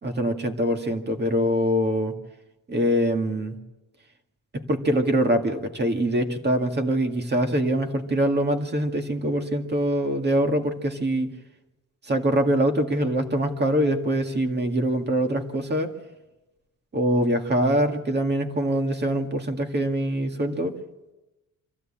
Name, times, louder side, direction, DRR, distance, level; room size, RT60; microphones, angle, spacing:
voice 1, 0.0-2.1 2.7-3.6 4.5-11.3 12.0-15.9 16.9-20.8, right 1 dB, 30° right, 5 dB, 2.0 m, -24 dB
25.5 x 15.5 x 8.7 m, 1.0 s
wide cardioid pair, 155°, 32 cm